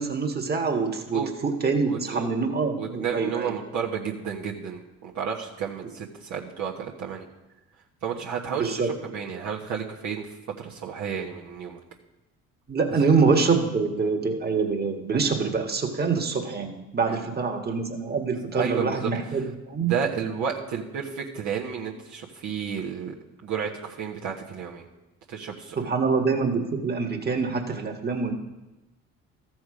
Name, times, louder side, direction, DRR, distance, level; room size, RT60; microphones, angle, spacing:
voice 1, 0.0-3.6 8.5-9.1 12.7-19.9 25.8-28.3, right 4 dB, 30° right, 2 dB, 1.7 m, -25 dB
voice 2, 1.9-2.3 2.8-7.2 8.0-10.2 10.6-11.8 17.1-17.2 18.3-19.1 19.8-23.1 23.4-24.8 25.3-25.8, right 7 dB, 65° right, -2 dB, 1.3 m, -32 dB
13.5 x 6.1 x 4.9 m, 1.0 s
supercardioid pair, 65°, 31 cm